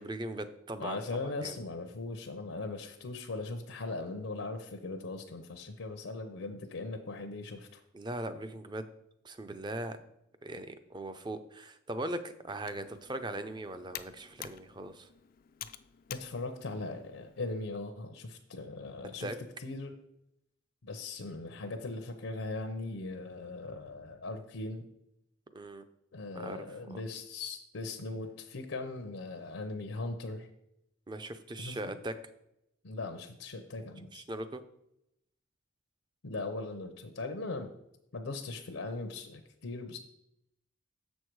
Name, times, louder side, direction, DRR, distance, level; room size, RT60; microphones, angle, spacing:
voice 1, 0.0-1.0 1.4-1.5 7.9-8.9 9.2-10.0 10.4-15.1 19.2-19.4 25.5-25.8 26.3-26.6 26.9-27.0 31.1-32.1 34.1-34.6, right 1 dB, 20° right, 10 dB, 0.5 m, -39 dB
voice 2, 0.8-7.8 16.1-19.3 19.6-19.9 20.8-24.9 26.1-30.5 31.6-32.0 32.8-34.2 36.2-37.7 38.1-40.0, left 3 dB, 80° left, 5 dB, 0.7 m, -39 dB
Computer keyboard, 12.5-17.6, left 11 dB, 45° left, 0.3 m, -49 dB
6.9 x 6.3 x 4.6 m, 0.81 s
head